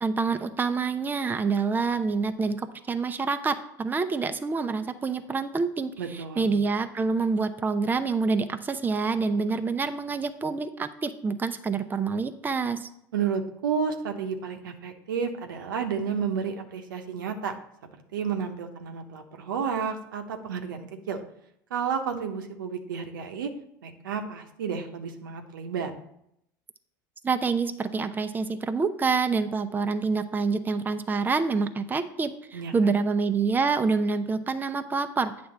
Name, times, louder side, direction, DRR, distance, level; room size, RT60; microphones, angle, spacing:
voice 1, 0.0-12.9 27.2-35.3, right 4 dB, 20° right, 8 dB, 0.6 m, -27 dB
voice 2, 6.0-6.5 13.1-17.5 18.1-21.2 21.7-23.5 23.8-25.9 32.5-33.0, right 6 dB, 85° right, 5 dB, 0.9 m, -31 dB
8.6 x 3.4 x 6.7 m, 0.76 s
hypercardioid pair, 90°, 11 cm